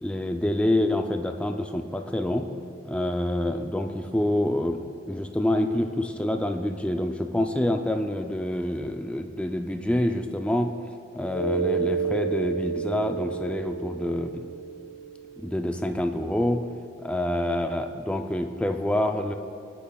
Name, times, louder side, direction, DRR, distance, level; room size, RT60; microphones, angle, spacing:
voice 1, 0.0-2.5 2.8-4.8 5.1-10.7 11.1-14.4 15.4-16.6 17.0-19.3, left 1 dB, 5° left, 5 dB, 0.4 m, -27 dB
Mallet percussion, 11.3-15.7, right 5 dB, 30° left, 1.6 m, -30 dB
17.0 x 8.5 x 2.3 m, 2.8 s
head